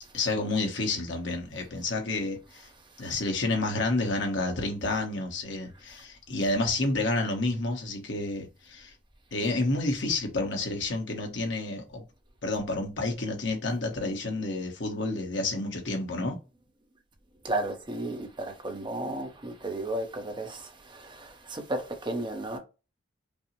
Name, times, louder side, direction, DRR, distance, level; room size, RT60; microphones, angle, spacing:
voice 1, 0.1-2.7 3.0-8.9 9.3-12.0 12.4-16.4, left 2 dB, 65° left, 1.1 m, -30 dB
voice 2, 17.4-20.6 21.0-22.6, right 1 dB, 25° right, 0.8 m, -33 dB
5.2 x 2.1 x 3.0 m
head